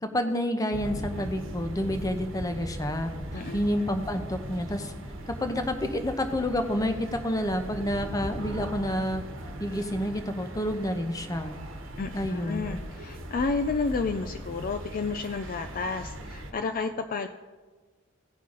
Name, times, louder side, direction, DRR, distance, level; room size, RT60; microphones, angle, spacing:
voice 1, 0.0-4.9 5.3-9.2 9.6-11.6 12.1-12.8, equal, 15° left, 7 dB, 0.7 m, -29 dB
sound 1, 0.7-16.5, equal, 70° right, 1.2 m, -39 dB
voice 2, 12.0-17.3, left 4 dB, 40° left, 8 dB, 0.3 m, -31 dB
16.5 x 5.6 x 3.8 m, 1.4 s
head